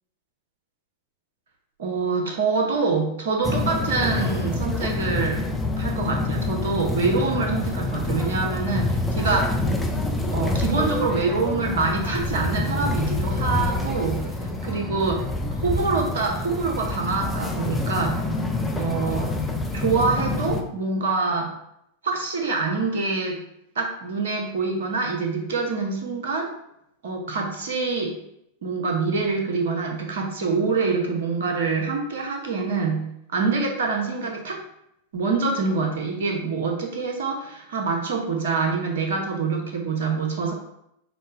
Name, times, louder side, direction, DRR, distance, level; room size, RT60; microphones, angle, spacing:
voice 1, 1.8-5.4 5.8-9.6 10.3-14.3 14.7-15.2 15.6-18.2 18.8-19.3 19.7-21.5 22.0-23.4 23.7-26.5 27.0-28.1 28.6-33.0 33.3-34.6 35.1-40.5, right 4 dB, 60° right, 1 dB, 0.8 m, -25 dB
sound 1, 3.4-20.6, left 2 dB, 10° left, 0.5 m, -27 dB
5.2 x 2.1 x 3.4 m, 0.78 s
figure-of-eight pair, 90°, 0 cm